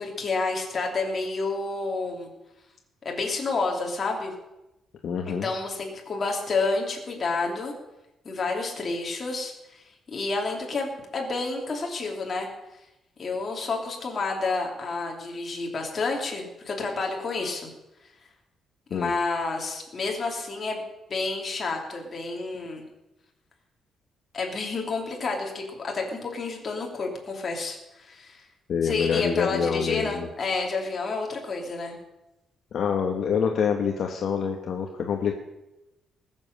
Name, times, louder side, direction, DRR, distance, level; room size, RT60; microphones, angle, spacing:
voice 1, 0.0-2.3 3.0-4.3 5.3-7.7 8.2-12.5 13.2-17.7 18.9-20.8 21.1-22.8 24.3-28.4 28.8-32.0, left 3 dB, 30° left, 1 dB, 2.9 m, -30 dB
voice 2, 5.0-5.5 18.9-19.1 28.7-30.3 32.7-35.3, left 7 dB, 50° left, 3 dB, 1.2 m, -26 dB
19.5 x 7.6 x 6.6 m, 0.96 s
cardioid pair, 170°, 0 cm